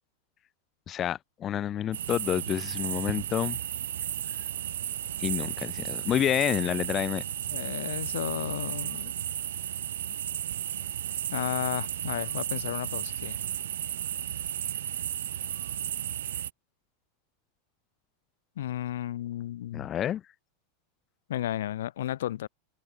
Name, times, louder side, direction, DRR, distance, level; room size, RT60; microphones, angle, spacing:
voice 1, 0.9-3.6 5.2-7.2 19.7-20.2, left 10 dB, 30° left, 1.0 m, -29 dB
sound 1, 1.9-16.5, right 11 dB, 90° right, 0.8 m, -34 dB
voice 2, 7.5-9.1 11.3-13.4 18.6-19.9 21.3-22.5, left 12 dB, 80° left, 2.4 m, -33 dB
supercardioid pair, 130°, 0 cm